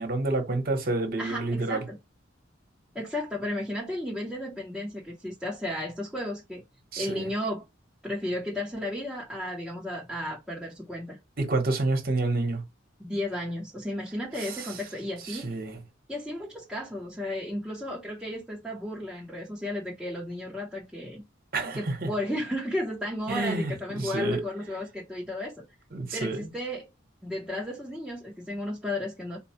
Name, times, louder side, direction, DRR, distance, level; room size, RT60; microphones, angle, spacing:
voice 1, 0.0-1.8 6.9-7.3 11.4-12.6 14.4-14.7 15.3-15.8 21.5-22.1 23.3-24.4 25.9-26.5, right 2 dB, 50° right, 1.2 m, -29 dB
voice 2, 1.2-2.0 2.9-6.6 7.0-7.6 8.0-11.2 13.0-15.5 16.1-21.2 21.7-25.6 26.1-26.9 27.2-29.4, left 1 dB, 5° right, 0.9 m, -34 dB
4.3 x 2.4 x 4.3 m
head